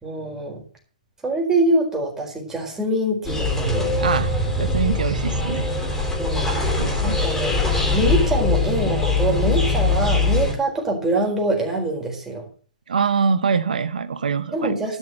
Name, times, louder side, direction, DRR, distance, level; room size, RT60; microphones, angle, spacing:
voice 1, 0.0-0.6 1.2-4.1 6.2-6.5 7.0-7.5 7.9-12.4 14.5-15.0, right 2 dB, 10° right, 1 dB, 4.4 m, -24 dB
sound 1, 3.2-10.5, left 3 dB, 10° left, 4.0 m, -22 dB
voice 2, 4.0-4.3 4.6-5.7 6.8-7.2 12.9-14.8, right 5 dB, 80° right, 12 dB, 0.9 m, -23 dB
12.5 x 6.4 x 7.7 m, 0.44 s
hypercardioid pair, 130°, 4 cm